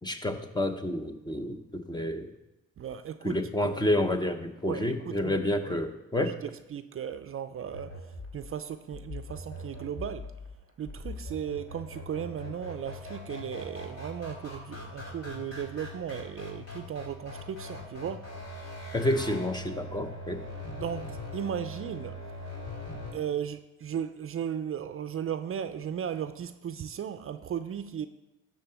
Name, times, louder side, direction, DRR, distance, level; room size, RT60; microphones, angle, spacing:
voice 1, 0.0-2.3 3.2-6.4 18.9-20.4, left 1 dB, 15° left, 0.9 m, -29 dB
voice 2, 2.8-3.4 3.6-3.7 4.6-5.8 6.4-10.3 10.8-18.3 20.8-22.2 23.1-28.1, right 9 dB, 45° right, 0.5 m, -36 dB
sound 1, 7.7-23.1, left 2 dB, 55° left, 3.9 m, -41 dB
11.5 x 3.8 x 6.9 m
cardioid pair, 90°, 30 cm